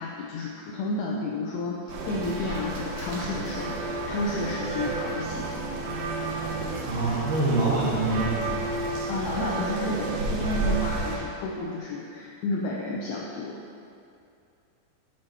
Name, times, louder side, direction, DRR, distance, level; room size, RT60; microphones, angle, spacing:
voice 1, 0.0-5.7 9.1-13.6, left 2 dB, 85° left, -2 dB, 2.2 m, -31 dB
sound 1, 1.9-11.2, right 3 dB, 75° right, 2.2 m, -31 dB
voice 2, 6.8-8.6, right 2 dB, 60° right, -8 dB, 3.2 m, -25 dB
14.0 x 7.9 x 3.0 m, 2.5 s
omnidirectional pair, 5.3 m